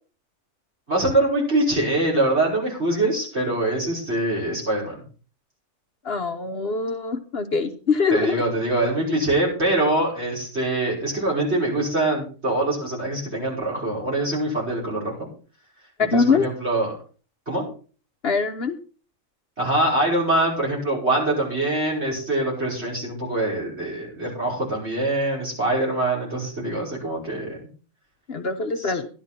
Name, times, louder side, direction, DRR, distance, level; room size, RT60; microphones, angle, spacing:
voice 1, 0.9-5.0 8.1-15.3 16.0-17.0 17.5-17.6 19.6-27.6 28.8-28.9, right 2 dB, 55° right, -4 dB, 6.2 m, -24 dB
voice 2, 6.0-8.4 16.1-16.4 18.2-18.8 28.3-29.1, left 4 dB, 50° left, 6 dB, 1.2 m, -23 dB
13.0 x 11.0 x 4.3 m, 0.38 s
omnidirectional pair, 1.4 m